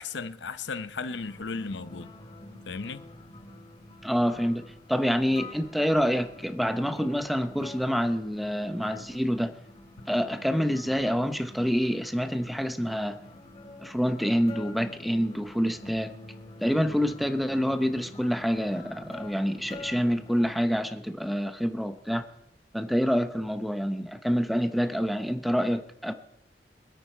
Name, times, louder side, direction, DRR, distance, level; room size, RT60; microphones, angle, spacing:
voice 1, 0.0-2.1 2.6-3.1, left 4 dB, 90° left, 0.8 m, -35 dB
sound 1, 1.1-20.6, left 2 dB, 35° left, 4.9 m, -47 dB
voice 2, 4.0-4.6 4.9-9.5 10.1-13.2 13.8-16.1 16.6-22.2 22.7-26.1, equal, ahead, 0.9 m, -27 dB
25.0 x 8.6 x 4.5 m
head